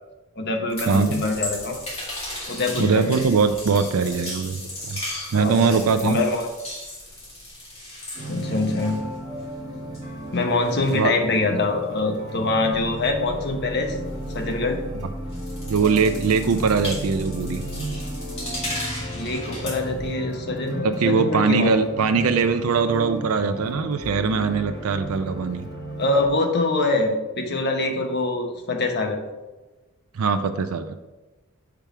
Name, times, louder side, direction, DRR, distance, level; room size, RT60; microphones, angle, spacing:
voice 1, 0.4-1.8 2.5-3.2 5.3-6.5 8.3-9.1 10.3-14.0 14.3-14.8 19.1-21.7 26.0-29.2, left 2 dB, 50° left, 4 dB, 0.8 m, -24 dB
sound 1, 0.7-9.6 9.9-14.9 15.2-20.1, left 1 dB, 30° left, 2.3 m, -36 dB
voice 2, 0.9-1.2 2.8-4.6 4.9-5.0 5.3-6.2 10.9-11.1 15.7-17.6 21.0-25.7 30.1-30.9, right 5 dB, 75° right, 8 dB, 0.4 m, -21 dB
sound 2, 8.1-26.3, right 1 dB, 30° right, 1.7 m, -34 dB
5.9 x 3.4 x 5.9 m, 1.1 s
head